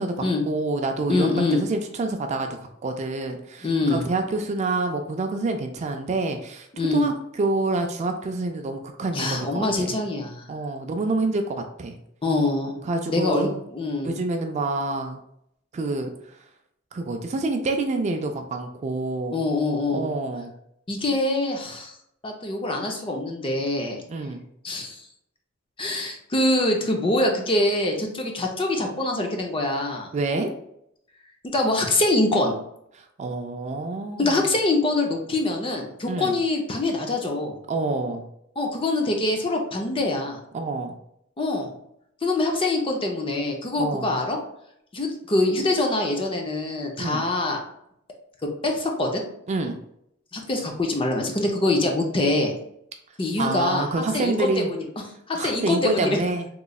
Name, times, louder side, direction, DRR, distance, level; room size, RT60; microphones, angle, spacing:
voice 1, 0.0-2.5 2.8-10.0 10.5-12.0 12.8-13.6 14.0-15.2 15.7-16.1 16.9-19.4 19.9-20.5 24.1-24.4 30.1-30.5 33.0-34.4 36.1-36.3 37.7-38.3 40.5-41.0 43.8-44.1 47.0-47.2 49.5-49.8 53.4-54.7 55.3-56.5, right 2 dB, 35° right, 5 dB, 0.3 m, -27 dB
voice 2, 1.1-1.6 3.6-4.0 6.8-7.0 9.1-10.5 12.2-12.8 13.1-14.1 19.3-20.1 20.9-21.9 22.2-24.0 24.6-25.0 25.8-30.1 31.5-32.5 34.2-37.6 38.6-40.4 41.4-41.7 42.2-44.4 44.9-47.6 48.6-49.2 50.3-52.5 53.2-53.9 54.1-54.9 55.3-56.1, left 2 dB, 25° left, 2 dB, 0.5 m, -24 dB
3.8 x 3.0 x 2.3 m, 0.76 s
head